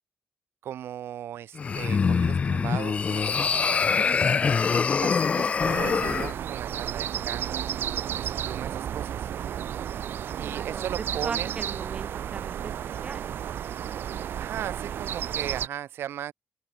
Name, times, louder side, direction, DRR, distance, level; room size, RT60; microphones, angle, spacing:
voice 1, 0.6-3.9 5.0-7.7 8.2-9.3 10.4-11.6 14.4-16.3, right 11 dB, 90° right, 6.0 m, -37 dB
sound 1, 1.6-6.3, left 5 dB, 35° left, 1.4 m, -24 dB
voice 2, 4.0-4.5 10.4-10.9 11.2-13.2, right 5 dB, 30° right, 0.9 m, -39 dB
sound 2, 5.6-15.7, right 9 dB, 65° right, 2.5 m, -32 dB
open air
wide cardioid pair, 170°, 4 cm